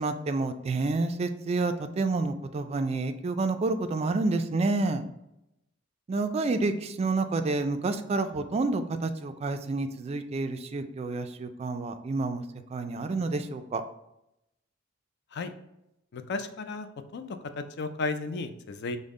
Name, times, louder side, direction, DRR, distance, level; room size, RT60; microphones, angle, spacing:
voice 1, 0.0-5.0 6.1-12.4 12.7-13.8, right 3 dB, 30° right, 8 dB, 0.3 m, -29 dB
voice 2, 16.1-16.9 17.1-19.0, left 3 dB, 60° left, 9 dB, 0.4 m, -34 dB
5.2 x 2.1 x 3.6 m, 0.85 s
head